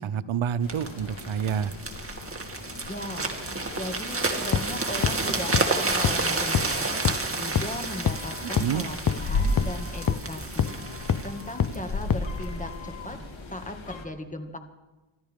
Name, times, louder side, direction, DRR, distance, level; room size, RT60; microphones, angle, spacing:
voice 1, 0.0-1.7 8.4-8.8, right 8 dB, 80° right, 14 dB, 0.8 m, -28 dB
sound 1, 0.6-14.1, left 2 dB, 75° left, 2.2 m, -36 dB
sound 2, 0.7-12.5 13.1-13.3, right 3 dB, 30° right, 2.4 m, -31 dB
voice 2, 2.9-7.0 7.3-10.8 11.2-13.2 13.5-14.6, left 1 dB, 15° left, 5 dB, 2.0 m, -37 dB
sound 3, 4.5-4.6 5.0-5.1 5.5-5.6 6.0-6.1 6.5-6.6 7.0-7.1 7.6-7.7 8.1-8.2 8.6-8.7 9.1-9.2 9.6-9.7 10.1-10.2 10.6-10.7 11.1-11.2 11.6-11.7 12.1-12.2, left 8 dB, 45° left, 0.8 m, -23 dB
26.5 x 13.0 x 3.7 m, 1.1 s
cardioid pair, 70°, 47 cm